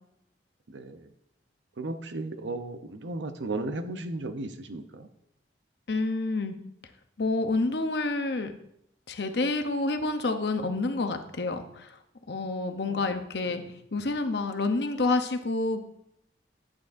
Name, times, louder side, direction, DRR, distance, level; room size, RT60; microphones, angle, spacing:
voice 1, 0.7-1.1 1.8-5.1 12.9-13.2 13.4-13.8, right 2 dB, 90° right, 9 dB, 0.7 m, -35 dB
voice 2, 5.9-6.5 7.2-8.5 9.1-11.9 12.3-13.6 13.9-15.8, left 3 dB, 65° left, 7 dB, 0.7 m, -28 dB
8.9 x 8.4 x 2.6 m, 0.76 s
head